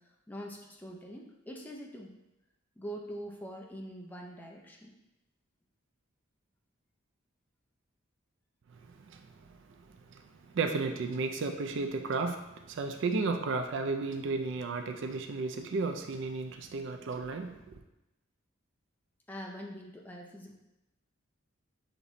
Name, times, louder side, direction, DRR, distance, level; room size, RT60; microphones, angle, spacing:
voice 1, 0.0-2.2 2.8-4.9 19.3-20.5, equal, 10° left, -1 dB, 0.5 m, -44 dB
voice 2, 8.7-9.8 10.1-17.8, right 3 dB, 60° right, 6 dB, 0.4 m, -34 dB
6.5 x 3.0 x 2.6 m, 0.95 s
head